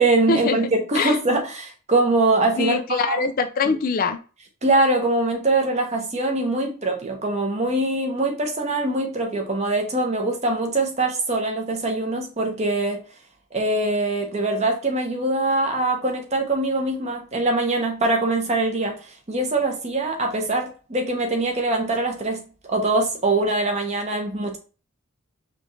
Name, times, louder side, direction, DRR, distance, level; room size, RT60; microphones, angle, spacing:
voice 1, 0.0-3.2 3.7-3.8 4.6-13.0 13.5-22.4 22.7-24.6, right 2 dB, 30° right, 0.9 m, -23 dB
voice 2, 2.6-4.2, left 4 dB, 40° left, 0.3 m, -23 dB
5.0 x 2.5 x 3.1 m
head